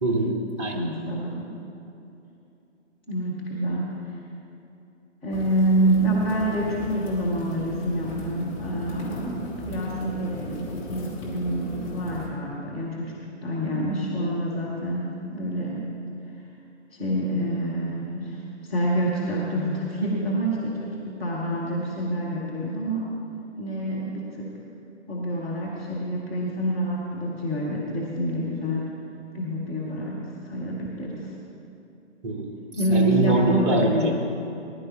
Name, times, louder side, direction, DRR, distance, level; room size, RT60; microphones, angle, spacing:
voice 1, 0.0-0.8 32.2-32.6 32.9-34.1, right 1 dB, 25° right, 0 dB, 1.4 m, -23 dB
voice 2, 0.8-1.5 3.1-4.2 5.2-13.1 13.4-15.8 16.9-23.1 23.6-24.5 25.1-28.9 29.3-31.3 32.8-34.1, right 1 dB, 5° left, -12 dB, 0.6 m, -27 dB
sound 1, 5.3-12.3, equal, 25° left, 2.5 m, -37 dB
20.0 x 11.0 x 2.9 m, 2.8 s
figure-of-eight pair, 135°, 37 cm